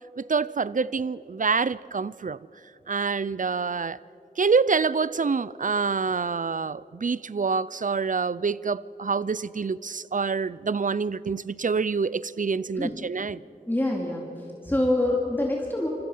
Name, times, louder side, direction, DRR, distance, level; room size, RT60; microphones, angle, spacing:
voice 1, 0.2-2.4 2.9-4.0 4.4-13.4, right 5 dB, 55° right, 19 dB, 0.5 m, -26 dB
voice 2, 13.7-15.9, left 1 dB, 15° left, -2 dB, 2.5 m, -26 dB
26.0 x 24.5 x 5.6 m, 2.9 s
wide cardioid pair, 65°, 16 cm